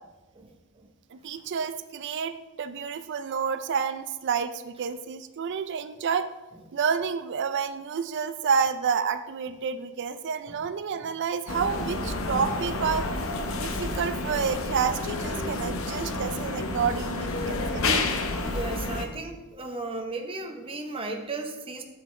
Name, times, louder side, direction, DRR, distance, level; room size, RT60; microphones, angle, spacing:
voice 1, 0.3-0.9 10.5-10.6 11.0-11.1 18.4-21.8, right 3 dB, 25° right, 3 dB, 0.8 m, -35 dB
voice 2, 1.1-6.3 6.7-13.0 13.5-18.1, right 6 dB, 55° right, 11 dB, 0.4 m, -29 dB
sound 1, 11.5-19.1, left 2 dB, 65° left, 0.8 m, -30 dB
9.2 x 7.2 x 3.2 m, 1.1 s
head